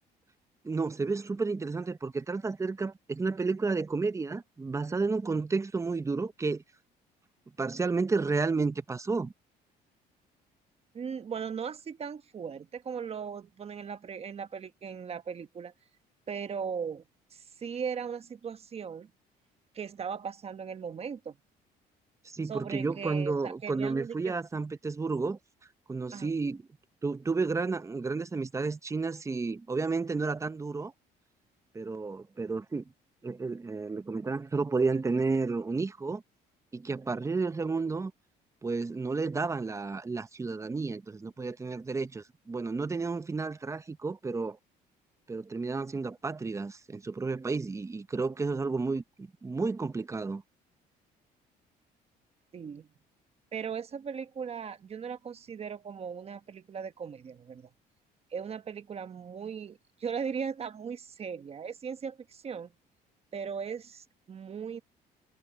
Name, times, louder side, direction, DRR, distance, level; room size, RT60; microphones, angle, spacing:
voice 1, 0.6-6.6 7.6-9.3 22.2-25.4 25.9-26.6 27.0-30.9 31.7-32.9 33.2-36.2 36.7-38.1 38.6-44.6 45.3-50.4, right 4 dB, 15° right, 0.8 m, -31 dB
voice 2, 10.9-15.7 16.3-17.0 17.3-19.1 19.7-21.4 22.4-24.3 26.1-26.3 52.5-52.9 53.5-57.7 58.3-62.7 63.3-64.8, right 6 dB, 35° right, 1.2 m, -38 dB
cardioid pair, 110°, 17 cm